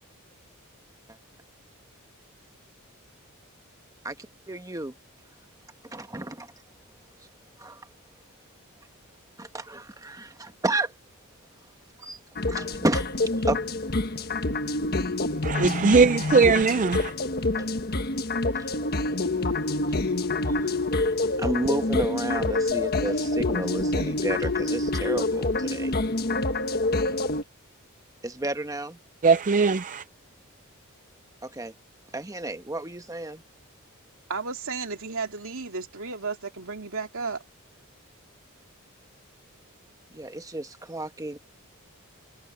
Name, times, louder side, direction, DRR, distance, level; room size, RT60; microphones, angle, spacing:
voice 1, 4.0-4.9 5.8-6.5 7.2-7.3 7.6-7.9 9.4-10.9 12.0-12.2 12.5-13.1 13.4-13.6 17.4-17.7 18.5-18.7 20.2-20.9 21.4-25.9 28.2-29.0 31.4-31.7 32.1-33.4 40.1-41.4, right 2 dB, 15° right, 1.3 m, -32 dB
sound 1, 12.4-27.4, left 2 dB, 45° left, 1.4 m, -27 dB
voice 2, 15.4-17.1 29.2-30.0, right 4 dB, 35° right, 0.5 m, -20 dB
voice 3, 34.3-37.4, right 4 dB, 65° right, 2.6 m, -33 dB
head